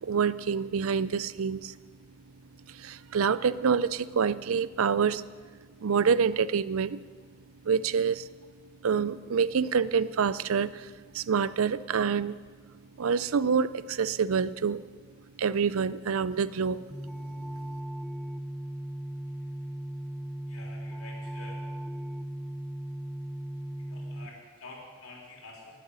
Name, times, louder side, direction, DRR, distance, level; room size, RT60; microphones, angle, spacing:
voice 1, 0.0-1.7 2.7-5.2 5.8-7.0 7.6-8.3 8.8-12.4 13.0-14.8 15.4-16.8, right 6 dB, 85° right, 17 dB, 0.5 m, -27 dB
sound 1, 16.9-24.3, right 1 dB, ahead, 0.5 m, -37 dB
voice 2, 20.5-21.7 23.8-25.8, left 2 dB, 85° left, -1 dB, 3.5 m, -48 dB
20.0 x 7.8 x 6.4 m, 1.5 s
head